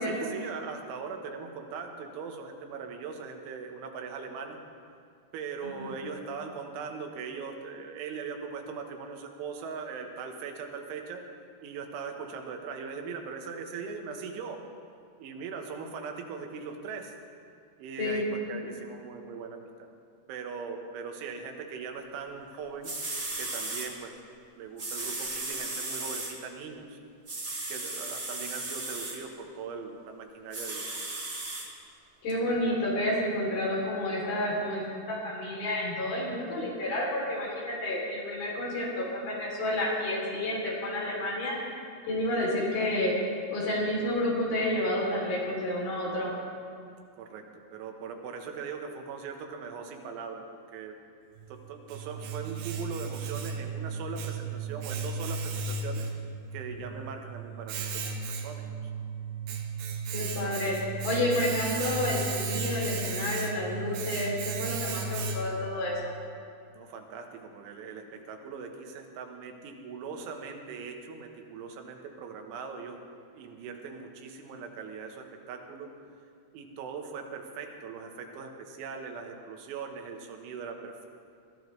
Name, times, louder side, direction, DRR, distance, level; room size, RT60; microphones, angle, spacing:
voice 1, 0.0-4.6 5.3-11.2 11.6-14.6 15.2-17.1 17.8-19.9 20.3-22.9 23.4-24.2 24.5-27.0 27.7-30.9 47.2-51.0 51.5-56.1 56.5-58.9 66.7-73.0 73.3-75.9 76.5-81.1, right 5 dB, 90° right, 3 dB, 3.6 m, -40 dB
voice 2, 5.6-6.0 18.0-18.2 32.2-41.6 42.0-43.1 43.5-46.3 60.1-60.7 61.0-66.1, left 1 dB, 55° left, -4 dB, 4.7 m, -30 dB
sound 1, 22.5-22.6 22.8-23.9 24.8-26.3 27.3-29.2 30.5-31.6 32.3-32.4, right 2 dB, 50° right, 0.9 m, -35 dB
Domestic sounds home sounds, 51.4-65.7, right 4 dB, 70° right, 2.7 m, -35 dB
22.0 x 14.0 x 3.2 m, 2.3 s
omnidirectional pair, 5.3 m